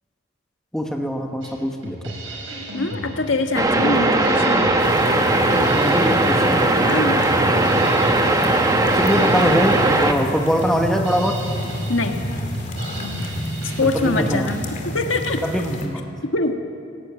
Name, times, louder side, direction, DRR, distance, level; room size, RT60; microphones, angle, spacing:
voice 1, 0.7-2.0 5.7-6.6 8.9-11.4 13.8-14.5 15.4-16.1, equal, 5° left, 2 dB, 1.4 m, -23 dB
Drum kit, 1.4-14.7, equal, 85° right, 5.0 m, -33 dB
voice 2, 2.7-4.7 6.8-7.2 11.9-12.2 13.8-15.4 16.2-16.5, left 3 dB, 80° left, 4 dB, 1.6 m, -23 dB
sound 1, 3.6-10.1, right 2 dB, 20° right, 1.1 m, -18 dB
sound 2, 4.8-15.9, equal, 35° left, 2.3 m, -29 dB
18.0 x 17.0 x 9.0 m, 2.4 s
head